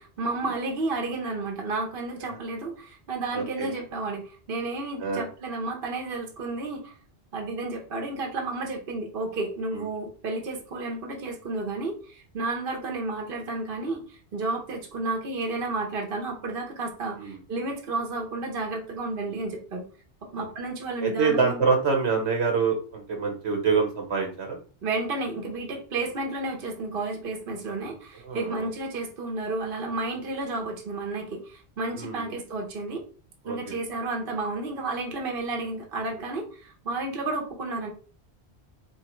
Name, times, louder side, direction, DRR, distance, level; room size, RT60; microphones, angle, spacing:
voice 1, 0.0-6.9 7.3-19.9 20.2-21.6 24.8-33.0 33.4-37.9, right 2 dB, 55° right, 1 dB, 1.1 m, -32 dB
voice 2, 3.3-3.7 5.0-5.3 9.7-9.8 17.2-17.4 19.3-19.4 20.3-20.4 21.0-24.6 28.2-28.7 31.9-32.4 33.4-33.8, right 5 dB, 70° right, 2 dB, 1.2 m, -26 dB
3.0 x 3.0 x 4.4 m, 0.39 s
omnidirectional pair, 1.1 m